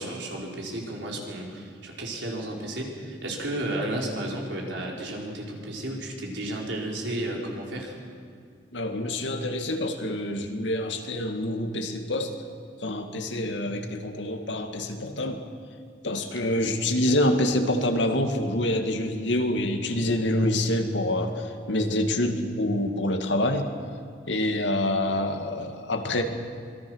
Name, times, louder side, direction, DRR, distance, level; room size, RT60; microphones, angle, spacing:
voice 1, 0.0-7.9 13.2-13.4, right 1 dB, 80° right, -1 dB, 4.6 m, -33 dB
voice 2, 8.7-12.3 12.8-15.5 16.0-23.7 24.3-26.2, left 1 dB, 85° left, 5 dB, 2.2 m, -26 dB
26.0 x 21.0 x 6.4 m, 2.2 s
head